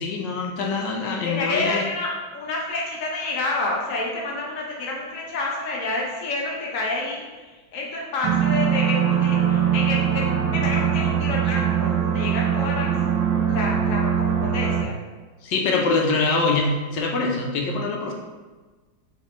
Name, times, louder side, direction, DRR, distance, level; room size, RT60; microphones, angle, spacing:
voice 1, 0.0-1.8 15.4-18.1, left 3 dB, 70° left, 1 dB, 1.2 m, -24 dB
voice 2, 1.2-12.9 13.5-15.0, left 2 dB, 90° left, -2 dB, 0.7 m, -29 dB
sound 1, 8.2-14.8, right 9 dB, 70° right, 1.2 m, -22 dB
4.2 x 3.9 x 3.0 m, 1.3 s
omnidirectional pair, 2.3 m